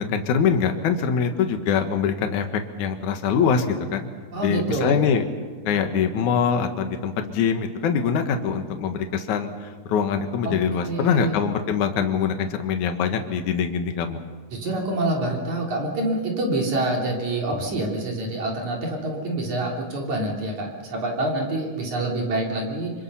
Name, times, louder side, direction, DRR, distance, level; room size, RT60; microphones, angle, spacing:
voice 1, 0.0-2.4 2.8-4.1 4.4-5.2 5.7-14.2, left 6 dB, 60° left, 6 dB, 2.7 m, -23 dB
voice 2, 4.3-5.0 10.4-10.5 10.8-11.4 14.5-22.9, right 2 dB, 50° right, -1 dB, 4.6 m, -26 dB
26.5 x 26.0 x 5.7 m, 1.5 s
omnidirectional pair, 4.5 m